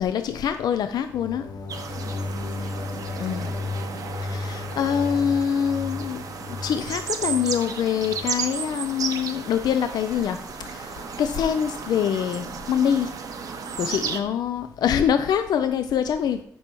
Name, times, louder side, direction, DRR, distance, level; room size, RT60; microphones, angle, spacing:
voice 1, 0.0-1.5 3.2-3.5 4.3-6.2 6.6-10.4 10.7-13.1 13.8-16.4, left 8 dB, 80° left, 0.4 m, -24 dB
sound 1, 1.1-8.4, left 3 dB, 65° left, 0.8 m, -34 dB
sound 2, 1.7-14.2, right 6 dB, 60° right, 0.9 m, -34 dB
voice 2, 1.8-3.9 13.7-14.3, left 1 dB, 25° left, 3.3 m, -47 dB
10.5 x 5.5 x 3.0 m
wide cardioid pair, 135°, 7 cm